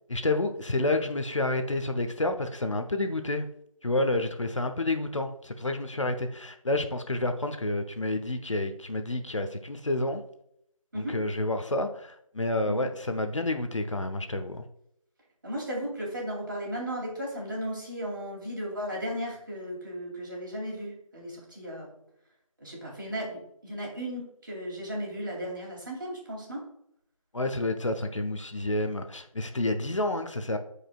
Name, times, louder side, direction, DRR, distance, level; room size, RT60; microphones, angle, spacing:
voice 1, 0.1-3.5 3.8-10.2 10.9-14.6 27.3-30.6, left 2 dB, 60° left, 7 dB, 0.8 m, -29 dB
voice 2, 15.4-21.9 22.6-26.6, equal, 35° right, -3 dB, 2.8 m, -35 dB
12.0 x 5.0 x 2.4 m, 0.75 s
figure-of-eight pair, 170°, 18 cm